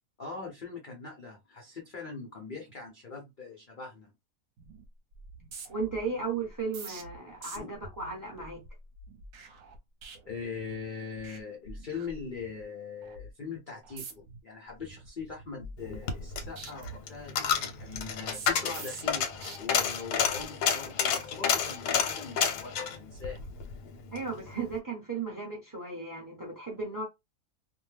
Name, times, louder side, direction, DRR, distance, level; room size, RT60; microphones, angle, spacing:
voice 1, 0.2-4.1 7.6-7.7 10.3-19.3 19.6-23.4, left 5 dB, 50° left, 0.6 m, -41 dB
sound 1, 4.6-4.8 5.1-10.8 11.1-11.4 11.7-12.6 13.0-13.3 13.8-14.4 14.8-16.3 16.6-19.6 20.1-20.4, right 3 dB, 60° right, 1.1 m, -47 dB
voice 2, 5.7-8.6 24.1-27.0, right 4 dB, 15° right, 0.7 m, -35 dB
Coin (dropping), 15.8-24.3 24.6-24.7, left 7 dB, 80° left, 1.2 m, -30 dB
2.7 x 2.1 x 3.2 m
omnidirectional pair, 1.8 m